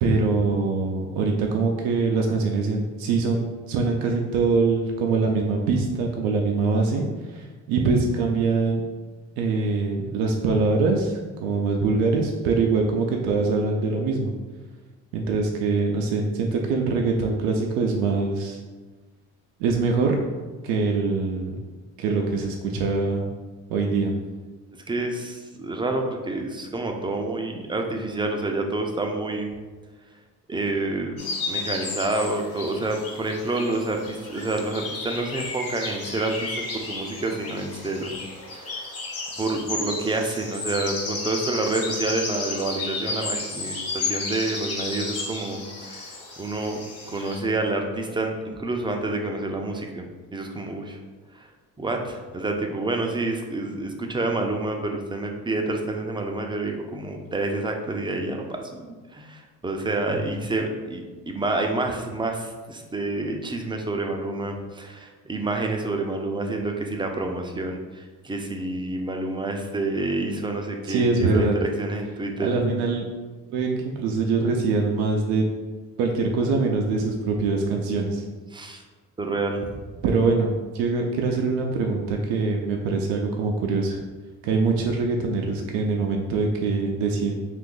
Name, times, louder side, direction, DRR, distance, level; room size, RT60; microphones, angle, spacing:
voice 1, 0.0-8.8 9.4-14.3 15.1-18.6 19.6-20.2 20.6-21.6 22.0-23.2 23.7-24.1 60.1-60.4 70.9-71.6 72.4-73.1 73.5-75.4 76.0-78.2 80.0-84.0 84.4-87.4, right 4 dB, 80° right, 1 dB, 0.5 m, -23 dB
voice 2, 24.7-29.5 30.5-31.2 31.5-38.1 38.5-38.9 39.4-46.8 47.1-51.0 51.3-51.5 51.8-58.9 59.1-72.6 78.5-78.8 79.2-79.8, right 2 dB, 15° right, 2 dB, 0.4 m, -28 dB
sound 1, 31.2-47.4, left 3 dB, 45° left, 0.9 m, -33 dB
2.6 x 2.5 x 3.7 m, 1.3 s
supercardioid pair, 70°, 35 cm